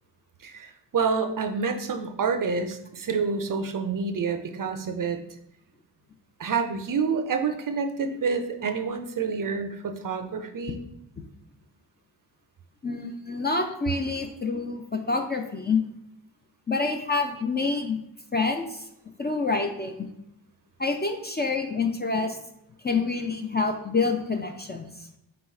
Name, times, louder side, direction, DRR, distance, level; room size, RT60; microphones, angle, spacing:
voice 1, 0.4-5.2 6.4-10.8, right 5 dB, 50° right, 6 dB, 0.5 m, -28 dB
voice 2, 12.8-15.8 16.7-18.0 18.3-18.9 19.2-19.9 20.8-22.4 22.8-24.9, left 4 dB, 25° left, 4 dB, 0.4 m, -27 dB
3.9 x 2.3 x 4.2 m, 0.81 s
cardioid pair, 65°, 43 cm